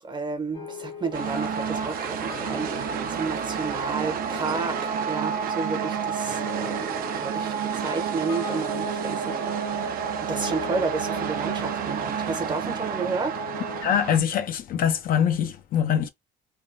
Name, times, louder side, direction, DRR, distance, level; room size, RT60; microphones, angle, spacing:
voice 1, 0.0-13.4, right 4 dB, 25° right, 0.7 m, -32 dB
sound 1, 0.5-13.8, left 7 dB, 80° left, 1.2 m, -41 dB
sound 2, 1.1-14.2, right 7 dB, 60° right, 0.6 m, -30 dB
voice 2, 13.8-16.1, left 8 dB, 60° left, 0.6 m, -23 dB
3.5 x 2.2 x 2.6 m
cardioid pair, 110°, 17 cm